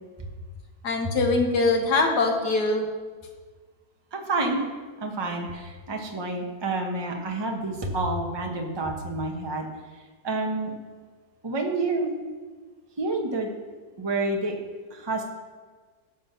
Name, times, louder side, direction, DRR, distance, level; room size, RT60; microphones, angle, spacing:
voice 1, 0.8-2.9, left 3 dB, 80° left, 2 dB, 2.0 m, -23 dB
voice 2, 4.1-4.6 5.0-9.7 9.9-10.7 11.4-12.1 13.0-13.5 14.0-14.5 14.9-15.2, right 2 dB, 20° right, 2 dB, 1.0 m, -29 dB
12.5 x 6.5 x 5.8 m, 1.4 s
omnidirectional pair, 1.7 m